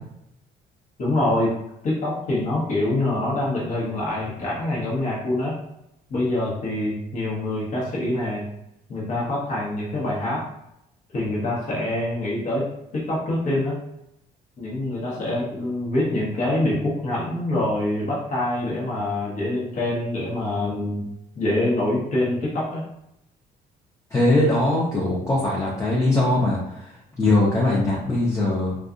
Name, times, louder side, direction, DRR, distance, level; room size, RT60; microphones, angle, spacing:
voice 1, 1.0-1.5 1.8-5.6 6.1-8.4 8.9-10.4 11.1-12.7 12.9-13.8 14.6-21.1 21.3-22.8, left 1 dB, 50° left, -5 dB, 1.0 m, -25 dB
voice 2, 24.1-28.8, left 2 dB, 20° left, -5 dB, 0.6 m, -21 dB
2.6 x 2.3 x 2.4 m, 0.82 s
cardioid pair, 110°, 17 cm